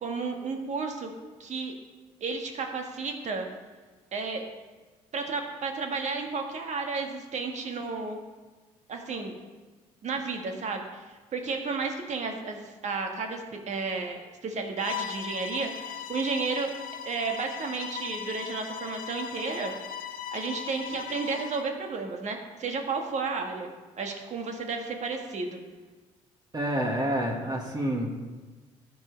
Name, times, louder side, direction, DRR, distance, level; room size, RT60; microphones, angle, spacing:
voice 1, 0.0-1.1 1.4-1.7 2.2-3.5 4.1-4.4 5.1-8.2 8.9-9.4 10.0-16.7 17.1-19.7 20.3-23.7 24.0-25.6, right 4 dB, 50° right, 3 dB, 1.7 m, -32 dB
Bowed string instrument, 14.8-21.7, left 8 dB, 65° left, 0.8 m, -38 dB
voice 2, 26.5-28.1, right 1 dB, 25° right, 1 dB, 1.9 m, -28 dB
13.0 x 8.4 x 3.4 m, 1.3 s
supercardioid pair, 65°, 15 cm